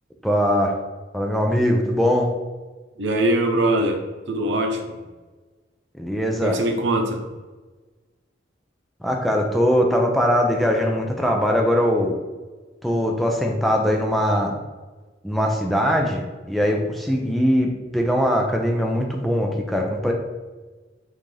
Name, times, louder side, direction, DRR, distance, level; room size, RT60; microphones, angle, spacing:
voice 1, 0.2-0.7 1.1-2.3 6.0-6.6 9.0-12.1 12.8-14.5 15.2-20.1, equal, ahead, 0 dB, 0.5 m, -21 dB
voice 2, 3.0-4.0 4.3-5.0 6.4-7.2, right 1 dB, 75° right, 3 dB, 0.8 m, -22 dB
5.6 x 2.6 x 3.3 m, 1.3 s
head